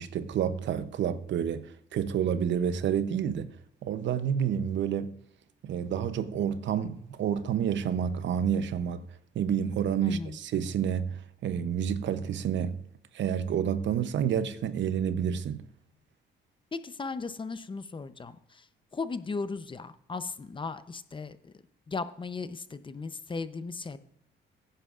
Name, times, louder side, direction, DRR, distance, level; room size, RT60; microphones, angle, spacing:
voice 1, 0.0-3.5 3.8-5.1 5.6-9.0 9.3-12.8 13.1-15.7, right 8 dB, 65° right, 0.8 m, -29 dB
voice 2, 10.0-10.4 16.7-18.6 18.9-21.5 21.9-24.0, left 4 dB, 25° left, 0.7 m, -36 dB
16.0 x 9.9 x 2.5 m
cardioid pair, 90°, 20 cm